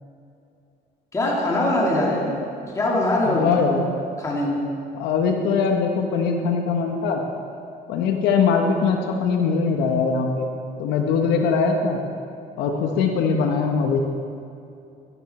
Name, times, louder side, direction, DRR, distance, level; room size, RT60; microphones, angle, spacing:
voice 1, 1.1-2.3 2.7-3.5 4.2-4.6, left 1 dB, 20° left, -4 dB, 2.5 m, -22 dB
voice 2, 3.2-3.8 4.9-7.2 7.9-10.5 10.8-12.0 12.6-14.0, left 5 dB, 90° left, 3 dB, 1.3 m, -21 dB
13.0 x 12.0 x 4.3 m, 2.6 s
cardioid pair, 110°, 17 cm